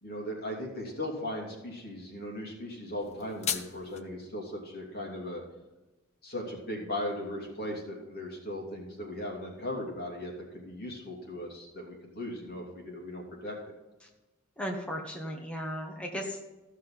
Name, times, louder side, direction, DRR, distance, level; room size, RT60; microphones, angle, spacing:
voice 1, 0.0-5.4 6.2-13.6, left 1 dB, 50° left, -1 dB, 2.8 m, -38 dB
sound 1, 3.0-4.0, left 7 dB, 35° left, 0.7 m, -35 dB
voice 2, 14.6-16.5, equal, 5° left, 1 dB, 1.3 m, -36 dB
15.0 x 6.4 x 5.7 m, 1.1 s
head